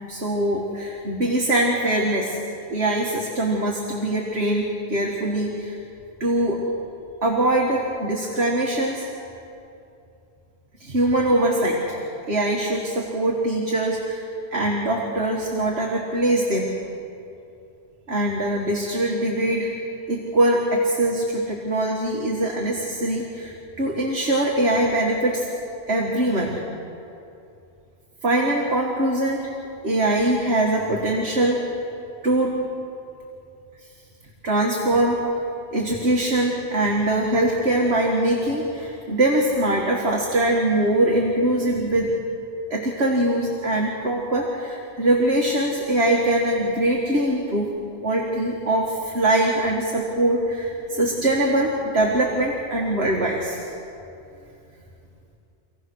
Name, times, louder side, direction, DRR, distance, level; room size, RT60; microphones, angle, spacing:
voice 1, 0.1-5.8 6.2-6.6 7.2-9.1 10.8-12.0 12.3-14.3 14.5-16.7 18.1-19.7 20.1-25.5 25.9-26.5 28.2-29.4 29.8-31.6 32.2-32.6 34.4-35.2 35.7-42.1 42.7-47.7 48.0-53.7, right 1 dB, 65° right, -2 dB, 2.2 m, -22 dB
26.5 x 16.5 x 6.3 m, 2.7 s
omnidirectional pair, 1.2 m